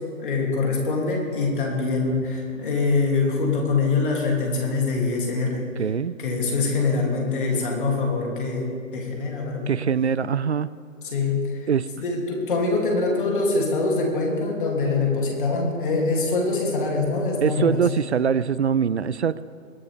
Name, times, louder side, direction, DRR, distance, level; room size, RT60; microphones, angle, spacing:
voice 1, 0.2-5.6 6.2-8.7 8.9-9.7 11.1-11.6 12.0-17.8, left 3 dB, 40° left, -1 dB, 3.2 m, -24 dB
voice 2, 5.8-6.1 9.7-10.7 11.7-11.9 17.4-19.4, right 7 dB, 55° right, 19 dB, 0.5 m, -23 dB
22.0 x 13.0 x 3.6 m, 2.2 s
figure-of-eight pair, 145°, 41 cm